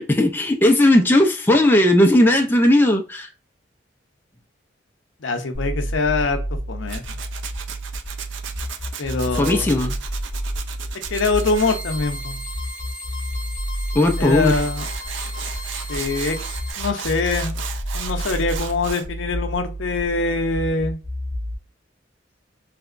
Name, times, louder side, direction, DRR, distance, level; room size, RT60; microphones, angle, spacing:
voice 1, 0.0-3.3 9.4-9.9 14.0-14.5, left 1 dB, 10° left, 0.3 m, -16 dB
voice 2, 5.2-6.4 6.7-7.2 9.0-9.8 11.1-12.4 14.2-14.9 15.9-16.4 16.8-17.6 17.9-21.0, left 3 dB, 75° left, 0.6 m, -23 dB
sound 1, 5.5-21.5, equal, 5° right, 1.1 m, -30 dB
Tools, 6.9-11.8 14.1-14.2 14.4-19.1, right 8 dB, 70° right, 0.4 m, -35 dB
sound 2, 11.0-16.7, left 1 dB, 25° left, 0.9 m, -36 dB
3.3 x 2.9 x 2.4 m
head